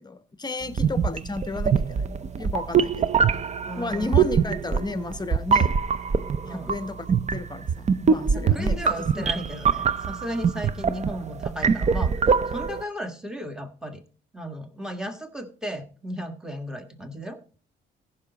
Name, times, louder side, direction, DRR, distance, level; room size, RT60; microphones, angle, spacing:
voice 1, 0.0-3.1 3.8-5.8 6.5-9.3, left 3 dB, 20° left, 12 dB, 0.9 m, -33 dB
sound 1, 0.7-12.8, right 6 dB, 35° right, 0.5 m, -24 dB
voice 2, 3.6-4.2 6.4-6.7 8.3-14.0 14.3-17.4, equal, 5° right, 7 dB, 1.5 m, -35 dB
14.5 x 5.8 x 4.0 m, 0.40 s
cardioid pair, 90°, 20 cm